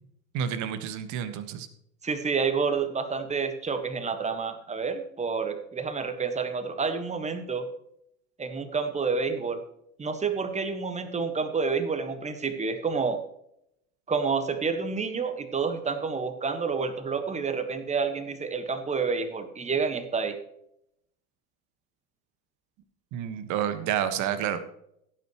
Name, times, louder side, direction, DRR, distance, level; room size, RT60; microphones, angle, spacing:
voice 1, 0.3-1.7 23.1-24.6, right 9 dB, 40° right, 10 dB, 1.6 m, -29 dB
voice 2, 2.0-7.7 8.4-9.6 10.0-13.2 14.1-20.3, right 5 dB, 15° right, 9 dB, 1.5 m, -29 dB
16.5 x 9.6 x 3.1 m, 0.75 s
figure-of-eight pair, 80°, 44 cm